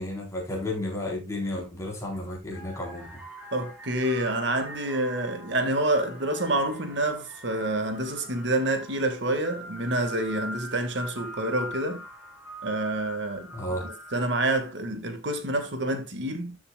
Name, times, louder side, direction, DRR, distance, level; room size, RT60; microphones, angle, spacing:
voice 1, 0.0-3.2 13.5-13.9, left 1 dB, 15° left, 4.0 m, -32 dB
sound 1, 2.0-2.1 2.4-14.5, equal, 5° right, 6.3 m, -43 dB
voice 2, 3.5-12.0 12.6-13.5 13.8-16.6, right 1 dB, 60° right, 2.0 m, -28 dB
13.5 x 7.3 x 2.4 m
head